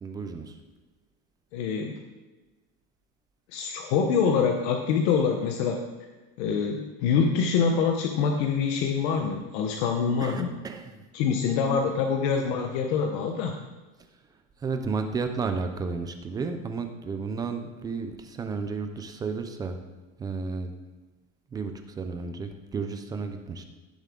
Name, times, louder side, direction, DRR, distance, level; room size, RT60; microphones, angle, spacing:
voice 1, 0.0-0.6 10.2-11.0 14.6-19.8 20.2-20.7 21.5-23.6, right 4 dB, 10° right, 6 dB, 0.3 m, -32 dB
voice 2, 1.5-2.0 3.5-5.8 6.4-10.5 11.1-13.6, left 6 dB, 60° left, 3 dB, 1.1 m, -25 dB
16.5 x 7.1 x 3.7 m, 1.2 s
cardioid pair, 175°, 36 cm